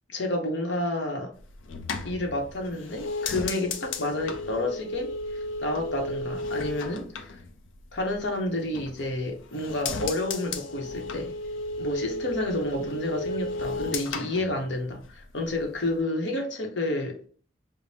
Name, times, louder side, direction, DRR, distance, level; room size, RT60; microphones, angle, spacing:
voice 1, 0.1-1.3 2.0-7.4 7.9-11.3 11.8-17.3, left 1 dB, 65° left, 0.8 m, -30 dB
sound 1, 1.4-8.2 8.5-9.2 9.5-15.2 15.5-16.0, left 3 dB, 85° left, 0.5 m, -34 dB
5.0 x 2.0 x 2.7 m
head